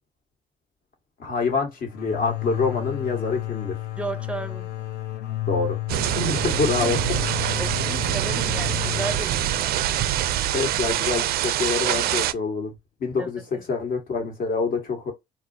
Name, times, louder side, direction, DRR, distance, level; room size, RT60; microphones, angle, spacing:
voice 1, 1.2-3.8 5.5-7.2 10.5-12.7 13.0-15.1, left 4 dB, 60° left, 1.5 m, -26 dB
sound 1, 1.9-11.4, left 16 dB, 75° left, 0.8 m, -32 dB
voice 2, 4.0-4.7 6.4-6.5 6.8-6.9 7.6-9.7 13.2-13.7, right 3 dB, 5° right, 0.5 m, -34 dB
sound 2, 5.9-12.3, right 13 dB, 65° right, 0.4 m, -25 dB
4.1 x 2.1 x 2.7 m
cardioid pair, 110°, 17 cm